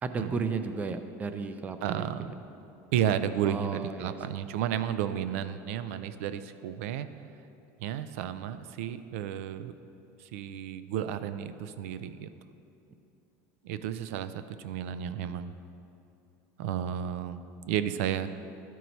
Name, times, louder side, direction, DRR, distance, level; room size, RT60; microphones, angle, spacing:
voice 1, 0.0-2.3 3.5-4.2, right 4 dB, 20° right, 9 dB, 0.4 m, -34 dB
voice 2, 1.8-2.3 2.9-7.1 7.8-9.7 10.2-12.3 13.6-15.5 16.6-18.3, right 10 dB, 85° right, 12 dB, 0.4 m, -32 dB
12.0 x 4.6 x 4.0 m, 2.7 s
supercardioid pair, 140°, 7 cm